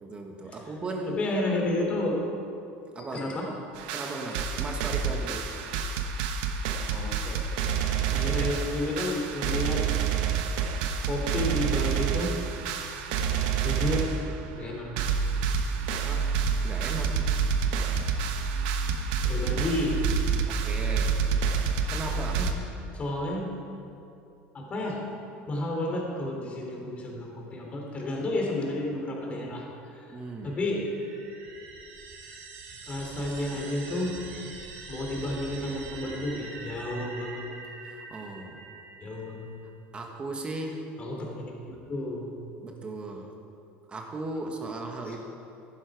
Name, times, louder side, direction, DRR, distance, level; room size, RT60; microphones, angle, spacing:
voice 1, 0.0-1.2 2.9-3.3 3.9-5.6 16.0-16.4 16.6-17.3 20.5-21.2 21.9-22.5 30.1-30.6 37.8-38.6 39.9-40.9 42.6-43.3 43.9-45.2, right 2 dB, 20° right, 2 dB, 1.5 m, -37 dB
voice 2, 1.1-2.2 3.1-3.5 6.9-7.4 8.1-9.8 11.0-12.4 13.6-14.1 14.6-14.9 19.2-20.0 22.0-22.5 22.9-23.5 24.5-25.0 25.5-29.6 29.9-30.2 30.4-30.9 32.9-34.1 34.9-37.4 39.0-39.5 41.0-42.4 45.0-45.2, left 1 dB, 25° left, -1 dB, 3.1 m, -31 dB
sound 1, 3.7-14.4 14.7-14.8 15.0-22.5, right 6 dB, 80° right, 1.2 m, -28 dB
sound 2, 30.4-39.7, right 4 dB, 55° right, 2.7 m, -44 dB
15.0 x 11.5 x 4.8 m, 2.7 s
supercardioid pair, 135°, 5 cm